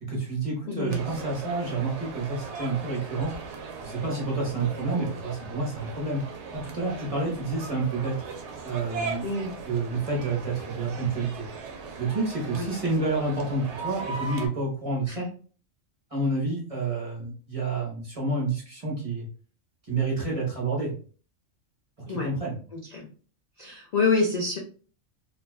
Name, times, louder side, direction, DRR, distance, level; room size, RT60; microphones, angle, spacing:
voice 1, 0.0-3.3 3.8-6.2 6.5-8.2 8.6-9.3 9.7-11.5 12.0-15.3 16.1-19.3 19.8-20.9 22.1-22.6, right 3 dB, 35° right, -3 dB, 0.7 m, -29 dB
voice 2, 0.7-1.0 9.2-9.5 12.5-12.7 15.1-15.3 22.1-22.3 22.7-23.1 23.6-24.6, left 4 dB, 70° left, -1 dB, 0.4 m, -27 dB
sound 1, 0.9-14.5, right 4 dB, 70° right, 0.8 m, -38 dB
2.5 x 2.2 x 2.3 m, 0.41 s
omnidirectional pair, 1.3 m